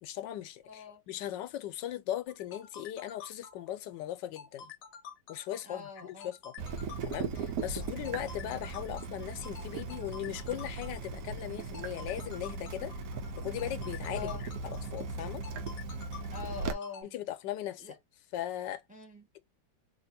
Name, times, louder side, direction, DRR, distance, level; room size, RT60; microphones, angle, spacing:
voice 1, 0.0-4.7 5.3-12.9 13.4-14.3 14.6-15.4 17.0-17.9 18.3-18.8, left 12 dB, 85° left, 1.3 m, -38 dB
voice 2, 0.7-1.0 5.6-6.3 7.7-8.0 14.1-14.4 16.3-17.1 17.8-18.0 18.9-19.3, left 5 dB, 5° right, 0.8 m, -44 dB
sound 1, 2.3-17.0, left 7 dB, 60° left, 1.0 m, -49 dB
Water tap faucet / Drip, 6.6-16.7, right 4 dB, 65° right, 1.0 m, -38 dB
2.9 x 2.8 x 4.1 m
omnidirectional pair, 1.9 m